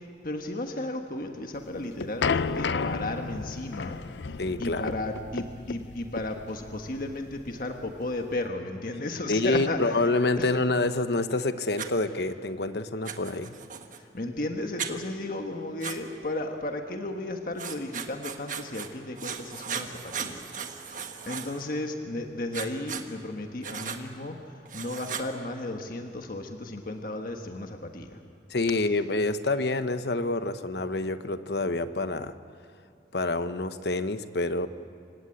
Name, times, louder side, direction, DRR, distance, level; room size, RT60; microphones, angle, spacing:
voice 1, 0.2-4.0 4.6-10.0 10.4-10.5 14.1-20.4 20.7-28.2, left 2 dB, 50° left, 4 dB, 1.4 m, -34 dB
sound 1, 1.6-8.4, left 5 dB, 85° left, 0.6 m, -33 dB
voice 2, 4.4-4.9 9.3-13.5 28.5-32.3 33.1-34.7, left 2 dB, 70° left, 11 dB, 1.0 m, -27 dB
Writing, 11.8-11.9 13.0-14.0 14.8-14.9 15.8-16.0 17.6-18.9 19.2-21.6 22.5-23.0 23.6-24.0 24.7-25.3, right 7 dB, 45° right, 1.5 m, -36 dB
27.0 x 17.0 x 8.7 m, 2.6 s
head